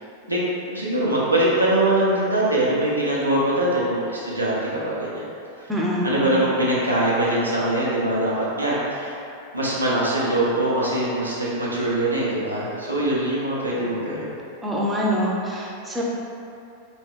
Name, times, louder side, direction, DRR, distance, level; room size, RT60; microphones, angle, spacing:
voice 1, 0.7-5.3 6.0-9.2 9.5-14.3, right 1 dB, 85° right, -7 dB, 0.8 m, -22 dB
voice 2, 5.7-6.3 14.6-16.0, equal, 10° right, -4 dB, 0.7 m, -25 dB
4.3 x 3.1 x 3.2 m, 2.7 s
figure-of-eight pair, 90°, 0 cm